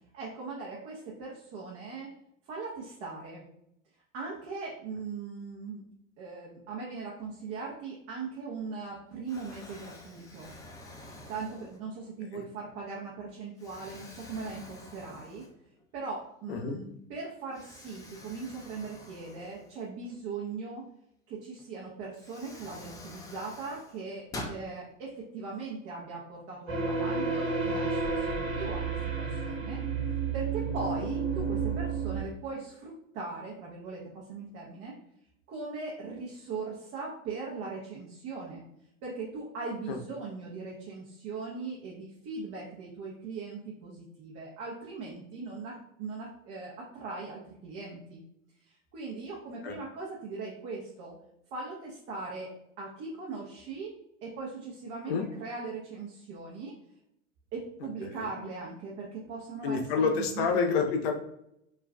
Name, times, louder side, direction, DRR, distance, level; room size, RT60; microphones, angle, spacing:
voice 1, 0.1-2.1 2.5-3.4 4.1-5.8 6.2-10.5 11.3-15.4 15.9-20.8 21.3-29.8 30.3-34.9 35.5-38.6 39.0-48.2 48.6-51.1 51.5-52.5 52.8-56.7 57.5-60.8, right 4 dB, 35° right, -3 dB, 0.9 m, -39 dB
Explosion, 8.6-8.9 9.3-12.1 12.7-12.9 13.6-15.8 16.2-16.3 17.5-20.2 21.6-21.7 22.1-24.6, left 1 dB, 10° left, 0.4 m, -47 dB
voice 2, 16.5-16.8 39.9-40.0 49.6-49.8 55.1-55.2 58.0-58.4 59.6-61.1, left 5 dB, 55° left, 3 dB, 0.7 m, -29 dB
sound 1, 26.7-32.2, right 4 dB, 85° right, 1.2 m, -31 dB
4.4 x 2.5 x 2.2 m, 0.77 s
figure-of-eight pair, 95°, 39 cm